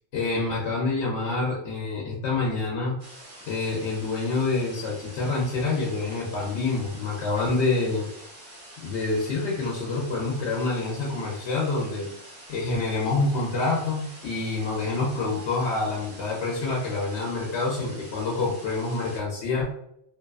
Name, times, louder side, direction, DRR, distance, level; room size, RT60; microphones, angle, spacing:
voice 1, 0.1-3.0 3.5-8.1 8.8-12.1 12.5-19.7, left 3 dB, 90° left, -3 dB, 0.9 m, -27 dB
sound 1, 3.0-19.2, right 1 dB, 35° right, 1.0 m, -46 dB
2.5 x 2.3 x 2.3 m, 0.73 s
omnidirectional pair, 1.1 m